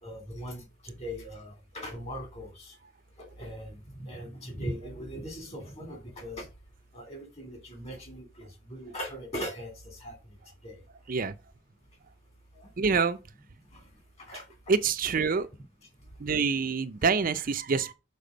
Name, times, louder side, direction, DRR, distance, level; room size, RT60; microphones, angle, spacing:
voice 1, 0.0-2.7 3.2-6.5 6.9-10.2 10.6-10.8 12.5-12.7 13.7-13.8 14.2-14.4 16.2-16.3, equal, 35° left, 2.8 m, -40 dB
voice 2, 12.8-13.2 14.7-15.5 16.2-17.9, right 5 dB, 45° right, 0.5 m, -26 dB
6.7 x 4.8 x 5.0 m
head